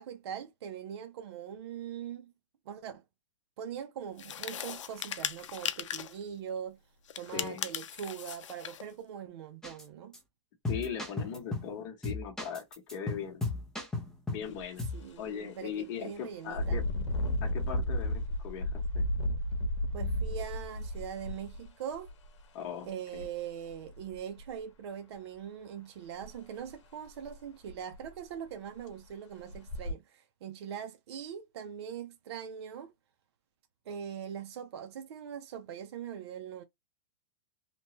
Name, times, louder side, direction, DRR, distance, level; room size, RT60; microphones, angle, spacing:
voice 1, 0.0-2.3 2.7-3.0 3.6-6.8 7.2-10.1 14.9-16.8 19.9-22.1 22.8-32.9 33.9-36.6, right 8 dB, 60° right, 0.6 m, -42 dB
sound 1, 4.2-6.2 7.1-8.9, left 9 dB, 85° left, 0.5 m, -38 dB
voice 2, 7.3-7.7 10.7-12.6 12.9-13.5 14.3-14.8 15.2-16.9 17.4-18.7 18.9-19.0 22.5-23.2, left 8 dB, 45° left, 0.9 m, -39 dB
sound 2, 9.6-9.8 10.1-10.2 10.6-11.7 12.0-14.5 14.8-15.0, left 3 dB, 5° left, 0.6 m, -35 dB
Engine, 14.4-14.6 15.1-15.3 16.5-22.3 23.1-23.3 23.7-24.4 26.2-26.3 26.7-26.8 27.3-27.4 27.7-28.2 28.8-28.9 29.5-29.9, left 1 dB, 70° left, 0.9 m, -33 dB
2.9 x 2.2 x 2.9 m
hypercardioid pair, 150°, 15 cm